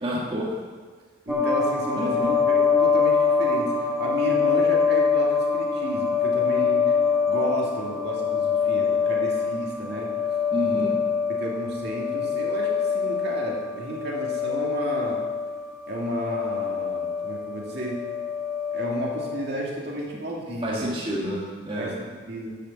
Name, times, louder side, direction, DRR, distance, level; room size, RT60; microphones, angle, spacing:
voice 1, 0.0-0.6 2.0-2.3 10.5-10.9 20.6-21.9, equal, 25° right, -5 dB, 1.6 m, -29 dB
sound 1, 1.3-19.4, left 6 dB, ahead, 1.2 m, -24 dB
voice 2, 1.3-6.9 7.3-10.2 10.6-10.8 11.3-15.3 15.9-18.1 18.7-20.9 21.8-22.6, right 1 dB, 55° right, -3 dB, 2.3 m, -32 dB
11.5 x 6.6 x 7.3 m, 1.5 s
head